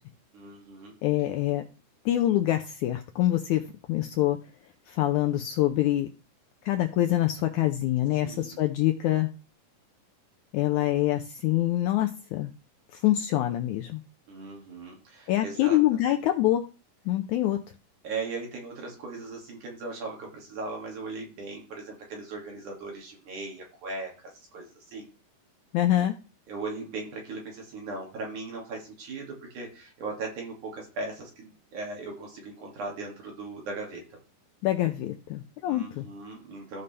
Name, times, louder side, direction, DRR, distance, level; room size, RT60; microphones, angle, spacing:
voice 1, 0.3-0.9 8.2-8.6 14.3-15.8 16.1-16.2 18.0-25.1 26.5-34.2 35.6-36.8, right 3 dB, 60° right, 0 dB, 3.7 m, -38 dB
voice 2, 1.0-1.6 2.1-4.4 4.9-6.1 6.7-9.3 10.5-12.5 12.9-14.0 15.3-16.6 17.1-17.6 25.7-26.2 34.6-36.1, left 14 dB, 80° left, 6 dB, 1.8 m, -25 dB
14.5 x 5.4 x 3.3 m, 0.33 s
omnidirectional pair, 4.0 m